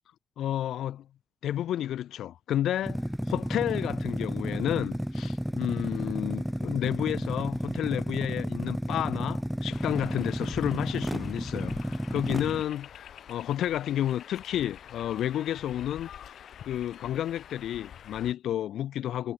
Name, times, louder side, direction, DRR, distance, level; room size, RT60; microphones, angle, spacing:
voice 1, 0.4-1.1 1.4-19.3, left 11 dB, 90° left, 1.3 m, -31 dB
sound 1, 2.8-12.6, equal, ahead, 0.7 m, -32 dB
sound 2, 9.7-18.3, left 9 dB, 65° left, 1.2 m, -46 dB
wide cardioid pair, 155°, 0 cm